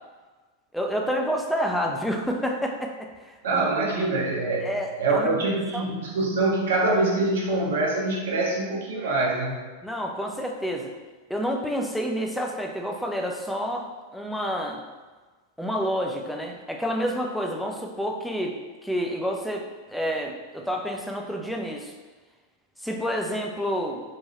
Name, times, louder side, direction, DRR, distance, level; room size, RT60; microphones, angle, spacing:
voice 1, 0.7-3.8 4.6-5.9 9.8-10.9 11.3-13.9 14.1-14.8 15.6-18.6 18.8-21.9 22.8-24.0, equal, ahead, 1 dB, 0.3 m, -29 dB
voice 2, 3.4-4.7 5.0-9.6, right 2 dB, 60° right, -1 dB, 0.6 m, -24 dB
2.8 x 2.2 x 3.0 m, 1.3 s
figure-of-eight pair, 90°, 0 cm